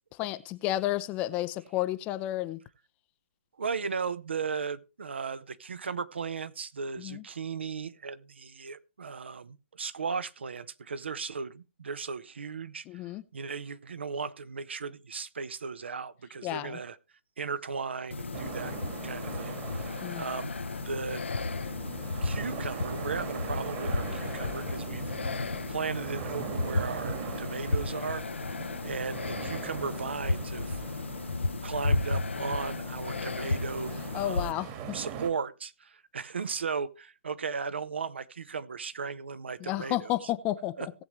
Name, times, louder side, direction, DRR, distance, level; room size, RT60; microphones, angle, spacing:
voice 1, 0.2-2.6 7.0-7.2 12.9-13.2 16.4-16.8 20.0-20.2 34.1-35.0 39.6-40.9, left 15 dB, 20° left, 0.6 m, -31 dB
voice 2, 3.6-17.0 17.4-18.8 19.0-20.5 20.8-21.2 22.2-25.1 25.7-28.2 28.8-30.8 31.6-34.6 34.9-40.3 40.8-40.9, right 5 dB, 65° right, 1.1 m, -36 dB
sound 1, 18.1-34.5, left 3 dB, 75° left, 0.9 m, -33 dB
sound 2, 18.3-35.3, right 7 dB, 25° right, 1.7 m, -42 dB
18.0 x 7.3 x 3.2 m
figure-of-eight pair, 140°, 7 cm